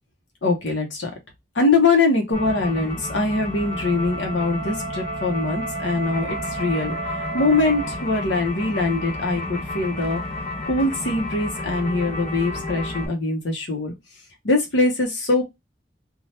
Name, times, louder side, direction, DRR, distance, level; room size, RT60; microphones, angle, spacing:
voice 1, 0.4-1.1 1.5-7.0 7.3-10.2 10.6-13.9 14.4-15.4, left 3 dB, 90° left, 0.8 m, -22 dB
sound 1, 2.3-13.1, left 2 dB, 30° left, 0.6 m, -32 dB
Wind instrument woodwind instrument, 3.4-8.1, right 4 dB, 75° right, 0.6 m, -34 dB
2.8 x 2.3 x 3.2 m
head